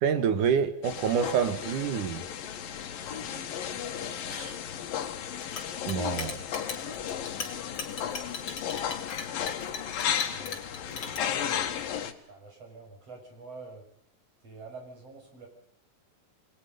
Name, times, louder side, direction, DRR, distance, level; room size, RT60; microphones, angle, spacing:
voice 1, 0.0-2.2 4.3-4.5 5.9-6.4, right 7 dB, 65° right, 10 dB, 3.2 m, -27 dB
sound 1, 0.8-12.1, left 9 dB, 90° left, 3.4 m, -34 dB
voice 2, 3.0-4.5 6.7-8.4 10.3-13.8 14.4-15.5, right 3 dB, 45° right, 3 dB, 7.1 m, -49 dB
Chink clink, 5.4-11.2, left 5 dB, 35° left, 3.8 m, -38 dB
28.5 x 21.5 x 5.4 m, 0.70 s
omnidirectional pair, 4.0 m